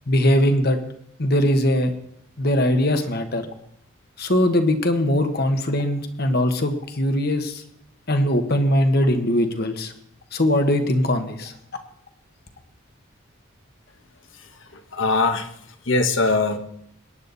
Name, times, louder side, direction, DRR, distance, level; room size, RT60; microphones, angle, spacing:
voice 1, 0.1-0.8 1.2-1.9 2.4-3.5 4.2-7.6 8.1-9.9 10.3-11.5, left 1 dB, 50° left, 7 dB, 1.4 m, -21 dB
voice 2, 14.3-15.5 15.8-16.6, left 3 dB, 65° left, 7 dB, 1.4 m, -22 dB
22.0 x 10.0 x 4.1 m, 0.71 s
head